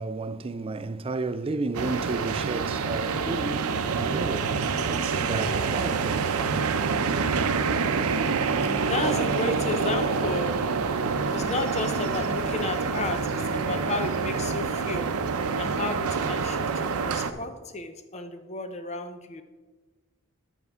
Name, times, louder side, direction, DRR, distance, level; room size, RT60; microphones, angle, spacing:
voice 1, 0.0-6.8, right 3 dB, 25° right, 0.3 m, -33 dB
sound 1, 1.7-17.3, right 5 dB, 85° right, 0.6 m, -27 dB
voice 2, 8.2-15.2 15.6-19.4, left 3 dB, 30° left, 0.6 m, -33 dB
15.0 x 5.5 x 3.6 m
head